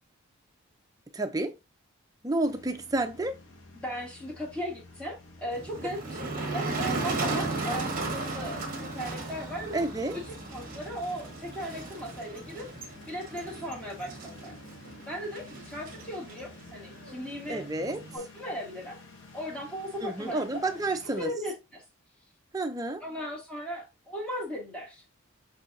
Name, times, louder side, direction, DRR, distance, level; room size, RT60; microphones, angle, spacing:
voice 1, 1.1-1.5 2.2-3.3 9.7-10.2 17.5-18.0 20.0-21.3 22.5-23.0, right 2 dB, 15° right, 0.4 m, -30 dB
sound 1, 2.4-21.3, left 3 dB, 60° left, 0.8 m, -51 dB
voice 2, 3.7-9.8 10.1-12.7 13.1-14.5 15.1-19.0 19.3-21.8 23.0-25.0, equal, 5° left, 1.2 m, -37 dB
Motor vehicle (road), 5.5-18.2, right 3 dB, 40° right, 1.0 m, -36 dB
6.1 x 2.8 x 2.5 m
head